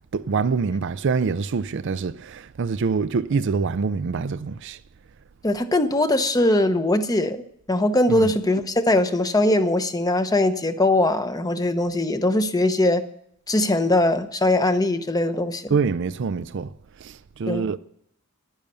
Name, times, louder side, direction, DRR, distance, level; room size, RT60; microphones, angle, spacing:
voice 1, 0.0-4.8 8.1-8.3 15.7-17.8, right 5 dB, 60° right, 0.4 m, -25 dB
voice 2, 5.4-13.0 13.5-15.7 17.5-17.6, left 1 dB, 20° left, 0.9 m, -21 dB
10.5 x 10.5 x 6.8 m
head